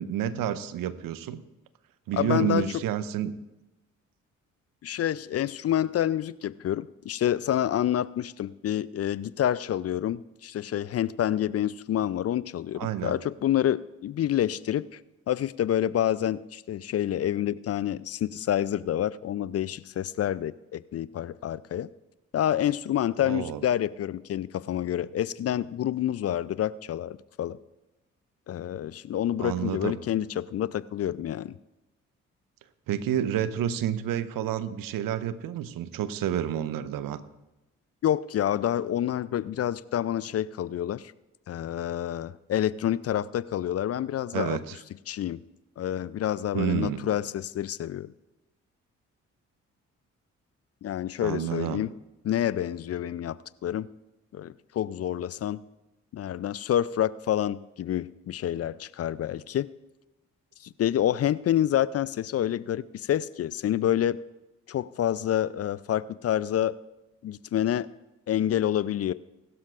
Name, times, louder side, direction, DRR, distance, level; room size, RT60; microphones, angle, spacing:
voice 1, 0.0-1.4 2.1-3.3 12.7-13.2 23.2-23.6 29.4-30.0 32.9-37.2 44.3-44.8 46.5-47.1 51.2-51.9, right 10 dB, 65° right, 14 dB, 0.9 m, -29 dB
voice 2, 2.1-2.8 4.8-15.0 15.3-21.9 22.3-27.6 28.5-31.6 38.0-41.1 41.5-44.6 45.1-45.4 45.8-48.1 50.8-51.9 52.2-53.9 54.3-55.6 56.1-59.7 60.8-64.2 64.7-66.8 67.2-67.9 68.3-69.1, left 11 dB, 40° left, 19 dB, 0.5 m, -28 dB
21.0 x 12.5 x 2.5 m, 0.99 s
hypercardioid pair, 40°, 37 cm